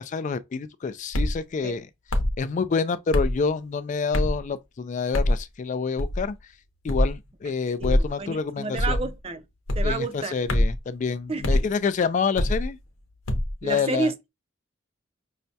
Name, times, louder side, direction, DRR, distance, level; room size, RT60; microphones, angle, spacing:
voice 1, 0.0-1.9 2.4-6.4 6.8-9.0 9.8-12.8 13.6-14.1, left 5 dB, 35° left, 0.3 m, -27 dB
sound 1, 1.1-1.4 2.1-2.4 3.1-3.4 4.1-4.4 5.1-5.4 6.0-6.3 6.9-7.1 7.8-8.1 8.8-9.1 9.7-9.9 10.5-10.8 11.4-11.6 12.3-12.7 13.3-13.5, left 1 dB, 80° left, 0.8 m, -23 dB
voice 2, 7.8-9.4 9.8-10.4 11.3-11.6 13.6-14.3, right 3 dB, 30° right, 0.4 m, -30 dB
5.6 x 2.2 x 2.7 m
head